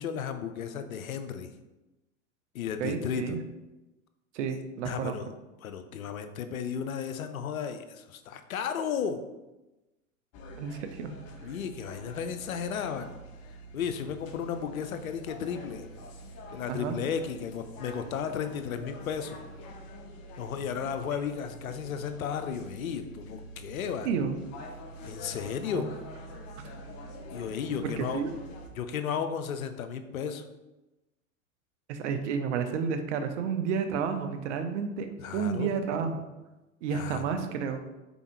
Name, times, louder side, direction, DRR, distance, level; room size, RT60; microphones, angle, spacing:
voice 1, 0.0-1.5 2.5-3.4 4.9-5.3 5.6-9.2 11.4-13.1 13.7-15.9 16.5-19.4 20.4-24.1 25.0-25.9 27.3-28.2 28.7-30.4 35.2-35.7 36.9-37.4, left 7 dB, 85° left, 9 dB, 0.5 m, -34 dB
voice 2, 2.8-3.4 4.3-5.2 10.6-11.1 16.7-17.0 24.0-24.4 25.7-25.8 26.6-26.7 28.0-28.3 31.9-35.1 35.3-36.2 36.8-37.8, right 6 dB, 60° right, 7 dB, 0.6 m, -31 dB
sound 1, 10.3-28.7, equal, 35° left, 0.7 m, -45 dB
4.0 x 3.5 x 3.0 m, 1.0 s
hypercardioid pair, 95°, 40 cm